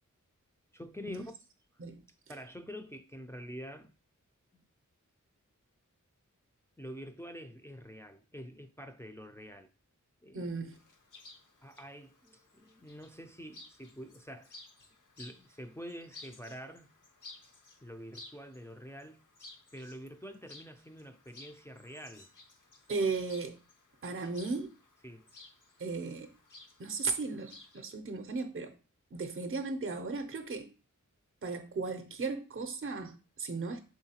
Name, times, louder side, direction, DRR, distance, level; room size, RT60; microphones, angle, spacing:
voice 1, 0.7-1.2 2.3-3.9 4.5-4.6 6.8-9.7 10.2-10.5 11.6-14.5 15.2-16.9 17.8-19.2 19.7-22.3 25.0-25.3, equal, 10° left, 0.4 m, -46 dB
voice 2, 10.3-10.8 22.9-23.6 24.0-24.7 25.8-26.3 26.8-28.7 29.1-30.7 31.4-33.8, right 4 dB, 45° right, 0.5 m, -36 dB
Chirp tweet, 10.7-27.8, left 3 dB, 70° left, 0.7 m, -56 dB
3.7 x 3.1 x 2.8 m
wide cardioid pair, 45°, 32 cm